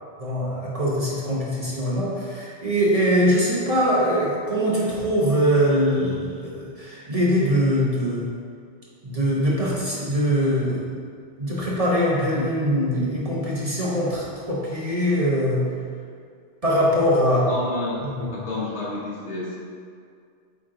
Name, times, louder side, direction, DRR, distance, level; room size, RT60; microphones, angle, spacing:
voice 1, 0.2-8.3 9.0-10.9 11.4-15.7 16.6-17.5 18.0-18.4, equal, 35° right, -6 dB, 1.2 m, -22 dB
voice 2, 17.5-18.0 18.3-19.6, left 2 dB, 70° left, -6 dB, 1.7 m, -30 dB
8.7 x 3.5 x 3.8 m, 2.2 s
omnidirectional pair, 1.2 m